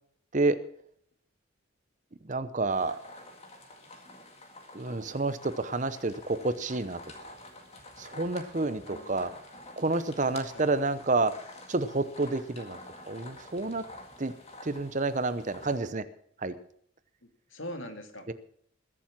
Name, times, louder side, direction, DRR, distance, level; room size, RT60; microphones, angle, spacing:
voice 1, 2.2-3.0 4.7-7.0 7.3-7.4 8.0-9.3 9.8-11.3 11.7-12.8 13.1-13.8 14.2-14.3 14.6-16.0 16.4-16.5 18.3-18.4, right 3 dB, 35° right, 13 dB, 0.7 m, -29 dB
sound 1, 2.7-15.8, left 2 dB, 30° left, 2.0 m, -49 dB
voice 2, 8.5-9.3 10.5-10.6 17.5-18.3, left 1 dB, 70° left, 7 dB, 2.1 m, -42 dB
21.5 x 7.4 x 6.0 m, 0.64 s
head